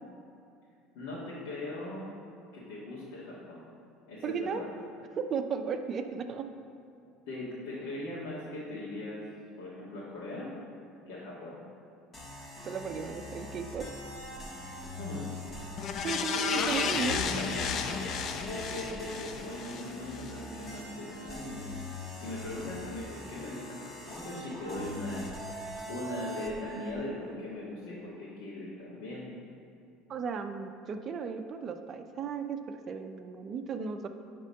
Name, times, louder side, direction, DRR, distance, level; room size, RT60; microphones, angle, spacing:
voice 1, 0.9-2.1 2.5-3.6 4.1-4.7 7.3-9.2 9.6-10.5 11.1-11.6 15.0-15.3 16.3-21.6 22.2-25.2 25.9-29.2, left 2 dB, 80° left, -9 dB, 1.9 m, -39 dB
voice 2, 4.2-4.6 5.1-6.5 12.6-13.9 16.0-17.3 30.1-34.1, right 6 dB, 35° right, 6 dB, 0.6 m, -35 dB
sound 1, 12.1-26.9, equal, 20° left, 1.3 m, -43 dB
sound 2, 15.8-20.3 20.7-20.8, left 6 dB, 45° left, 0.5 m, -33 dB
10.5 x 3.7 x 5.6 m, 2.5 s
cardioid pair, 125°, 0 cm